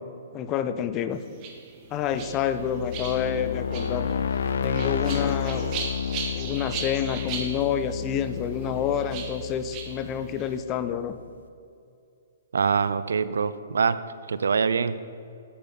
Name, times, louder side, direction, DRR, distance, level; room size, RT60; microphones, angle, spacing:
voice 1, 0.3-1.2 1.9-4.1 4.6-5.7 6.4-11.2, left 8 dB, 25° left, 11 dB, 0.5 m, -28 dB
sound 1, 1.1-10.6, right 5 dB, 30° right, 1.1 m, -39 dB
sound 2, 2.0-10.8, left 7 dB, 80° left, 0.4 m, -31 dB
voice 2, 12.5-14.0 14.3-15.0, right 5 dB, 85° right, 15 dB, 0.4 m, -24 dB
8.5 x 5.7 x 7.0 m, 2.5 s
hypercardioid pair, 150°, 0 cm